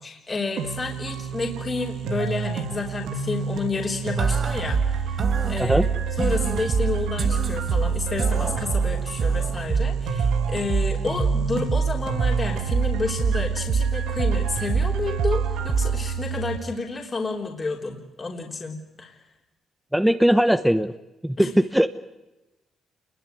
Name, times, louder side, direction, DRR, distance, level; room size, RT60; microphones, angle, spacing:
voice 1, 0.0-5.2 5.5-19.2 21.4-21.5, left 3 dB, 30° left, 0 dB, 3.6 m, -30 dB
sound 1, 0.6-16.6, right 6 dB, 85° right, 2.1 m, -30 dB
sound 2, 4.2-16.2, right 5 dB, 45° right, 1.3 m, -25 dB
voice 2, 19.9-20.9 21.2-21.9, equal, 5° right, 9 dB, 1.1 m, -19 dB
28.0 x 21.5 x 9.4 m, 1.0 s
cardioid pair, 90°, 0 cm